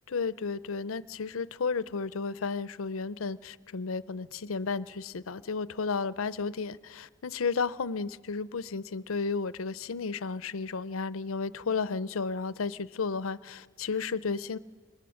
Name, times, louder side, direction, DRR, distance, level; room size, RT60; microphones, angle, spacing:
voice 1, 0.1-14.6, left 4 dB, 90° left, 17 dB, 0.6 m, -33 dB
26.5 x 22.0 x 6.5 m, 1.5 s
head